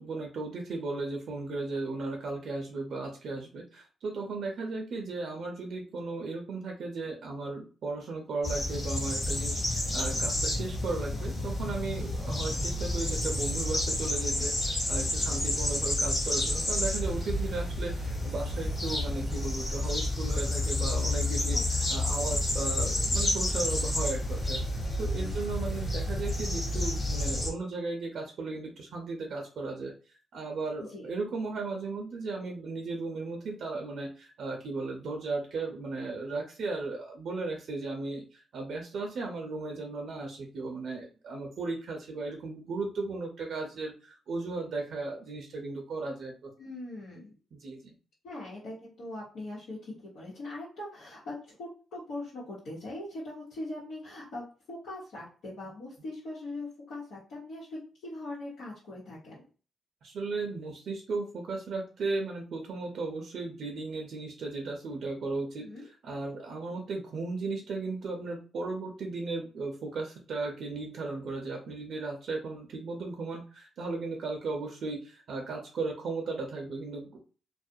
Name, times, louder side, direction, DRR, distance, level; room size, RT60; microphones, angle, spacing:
voice 1, 0.0-21.6 21.9-46.5 47.5-47.9 60.0-65.7 66.0-77.2, right 3 dB, 70° right, 2 dB, 0.5 m, -36 dB
sound 1, 8.4-27.5, left 1 dB, 35° left, 1.1 m, -30 dB
voice 2, 25.2-25.5 30.8-31.1 46.6-47.3 48.2-59.4 65.6-65.9, left 2 dB, 80° left, -8 dB, 1.0 m, -41 dB
2.3 x 2.1 x 2.6 m, 0.37 s
cardioid pair, 70°, 0 cm